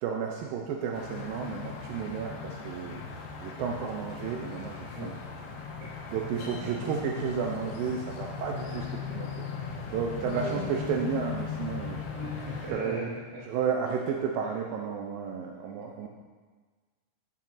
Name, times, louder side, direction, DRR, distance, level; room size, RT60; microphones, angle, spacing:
voice 1, 0.0-3.0 3.4-5.1 6.1-9.5 9.9-12.1 12.6-13.1 13.5-16.1, right 6 dB, 90° right, 1 dB, 2.0 m, -32 dB
sound 1, 0.9-12.7, left 6 dB, 80° left, 3.0 m, -38 dB
voice 2, 12.2-13.4, equal, 55° right, -9 dB, 2.7 m, -38 dB
10.5 x 8.7 x 2.7 m, 1.4 s
omnidirectional pair, 4.8 m